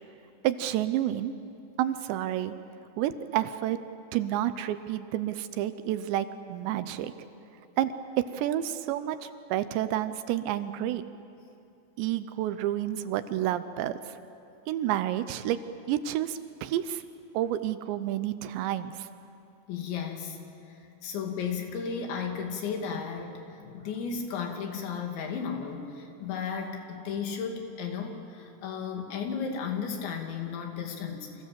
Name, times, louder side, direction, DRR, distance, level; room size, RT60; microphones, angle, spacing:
voice 1, 0.4-1.3 1.8-2.5 3.0-3.8 4.1-7.1 7.8-7.9 8.3-11.1 12.0-14.1 14.7-15.6 15.9-17.0 17.3-19.1, right 12 dB, 80° right, 12 dB, 2.9 m, -30 dB
voice 2, 19.7-20.4 21.0-31.4, left 6 dB, 75° left, 3 dB, 4.7 m, -34 dB
30.0 x 26.0 x 7.6 m, 2.7 s
omnidirectional pair, 5.3 m